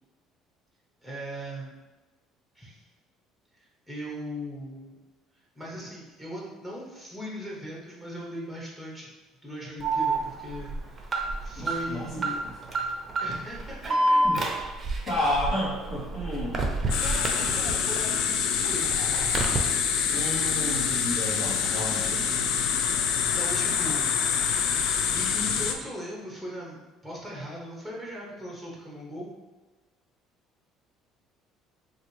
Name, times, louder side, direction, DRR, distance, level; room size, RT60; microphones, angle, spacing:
voice 1, 1.0-1.7 2.5-2.8 3.9-5.0 5.5-9.1 9.4-12.4 13.2-14.2 17.0-19.3 23.2-24.2 24.7-26.8 27.0-29.3, equal, 5° left, -4 dB, 0.9 m, -39 dB
Alarm, 9.8-18.0 18.4-19.6, right 2 dB, 25° right, 0.6 m, -28 dB
voice 2, 11.5-12.2 14.2-14.4 15.0-16.6 20.1-22.5, left 1 dB, 50° left, -7 dB, 1.5 m, -31 dB
sound 1, 16.9-25.7, left 7 dB, 70° left, 0.3 m, -26 dB
4.1 x 2.5 x 3.2 m, 1.2 s
cardioid pair, 120°, 0 cm